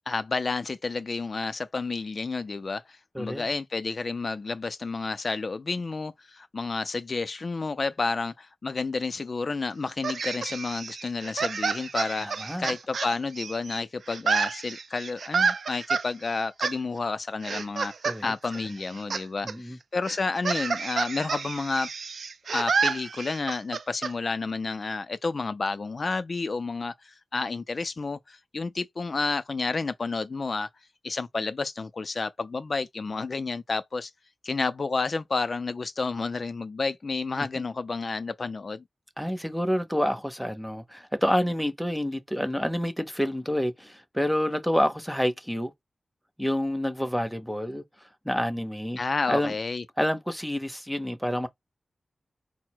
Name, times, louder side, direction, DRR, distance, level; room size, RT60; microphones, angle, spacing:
voice 1, 0.1-17.9 18.2-21.9 22.5-30.7 31.0-34.1 34.4-38.8 49.0-49.8, left 4 dB, 50° left, 0.3 m, -30 dB
voice 2, 3.1-3.5 12.2-12.7 18.0-18.3 19.4-19.8 37.4-37.5 39.2-45.7 46.4-47.8 48.3-49.0 49.3-49.5 50.0-51.5, equal, ahead, 0.5 m, -28 dB
sound 1, 10.0-13.8 14.1-16.0 16.6-16.7 17.4-18.2 18.5-19.2 19.5-19.6 20.1-24.1, right 5 dB, 90° right, 0.3 m, -29 dB
4.4 x 2.0 x 4.4 m
wide cardioid pair, 125°, 0 cm